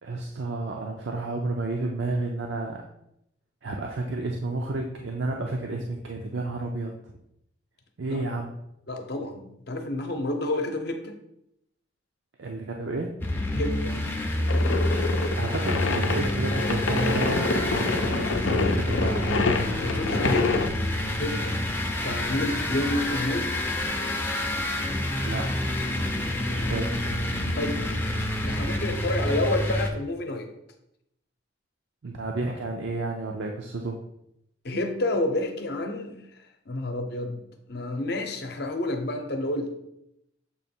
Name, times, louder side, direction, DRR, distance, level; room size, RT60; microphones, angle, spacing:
voice 1, 0.0-2.8 3.6-6.9 8.0-8.6 12.4-13.1 15.4-19.5 25.2-25.5 26.5-27.2 32.0-34.0, right 2 dB, 70° right, 1 dB, 0.5 m, -31 dB
voice 2, 8.9-11.1 13.5-14.0 19.8-20.7 21.2-21.6 22.0-23.5 26.5-26.7 27.4-27.9 28.4-30.5 34.6-36.2 36.7-37.4 37.7-39.7, left 1 dB, 55° left, 5 dB, 0.7 m, -29 dB
sound 1, 13.2-29.9, left 1 dB, 10° left, 0.5 m, -28 dB
sound 2, 14.4-20.7, left 3 dB, 90° left, 0.6 m, -27 dB
7.0 x 3.1 x 4.4 m, 0.80 s
head